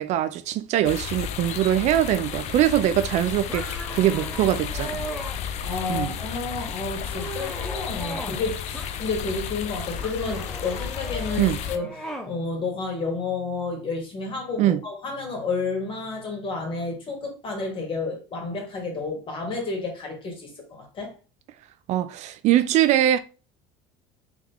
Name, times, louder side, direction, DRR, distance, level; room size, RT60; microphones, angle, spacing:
voice 1, 0.0-5.0 5.9-6.1 11.4-11.6 14.6-14.8 21.9-23.2, right 12 dB, 55° right, 0.4 m, -22 dB
sound 1, 0.8-11.8, left 8 dB, 55° left, 0.5 m, -33 dB
sound 2, 3.5-5.4 5.9-6.4 6.8-8.4 8.7-9.4 10.0-12.3, right 1 dB, 5° left, 0.8 m, -38 dB
voice 2, 5.6-21.1, left 3 dB, 35° left, 2.0 m, -31 dB
3.6 x 3.2 x 3.5 m
supercardioid pair, 105°, 14 cm